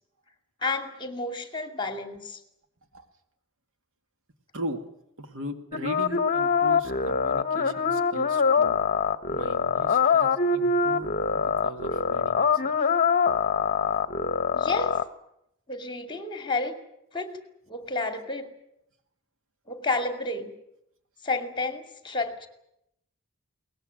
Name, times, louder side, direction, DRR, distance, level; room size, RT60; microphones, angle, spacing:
voice 1, 0.6-2.4 14.5-15.0 15.7-16.8 17.1-17.3 17.7-18.5 19.7-20.5 21.2-22.5, left 3 dB, 20° left, 6 dB, 2.5 m, -30 dB
voice 2, 5.2-8.8 9.3-13.0, equal, 65° right, 6 dB, 2.3 m, -39 dB
sound 1, 5.7-15.0, left 5 dB, 40° left, 1.1 m, -24 dB
22.0 x 19.0 x 9.1 m, 0.79 s
head